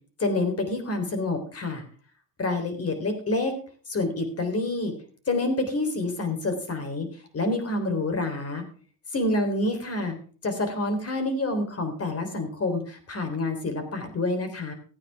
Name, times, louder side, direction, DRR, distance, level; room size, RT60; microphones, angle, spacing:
voice 1, 0.2-1.8 2.4-3.5 3.9-4.9 5.3-7.1 7.3-8.6 9.1-10.1 10.4-14.7, left 2 dB, 35° left, 7 dB, 3.8 m, -27 dB
15.5 x 9.2 x 3.6 m, 0.43 s
cardioid pair, 95°, 42 cm